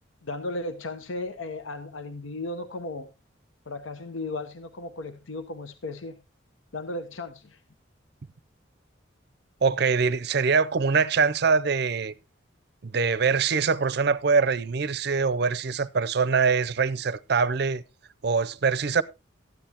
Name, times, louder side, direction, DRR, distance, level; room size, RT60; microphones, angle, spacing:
voice 1, 0.2-3.1 3.7-6.2 6.7-7.6, left 2 dB, 80° left, 0.9 m, -35 dB
voice 2, 9.6-12.1 12.8-17.8 18.2-19.0, right 5 dB, 55° right, 0.5 m, -23 dB
13.5 x 10.0 x 2.8 m
head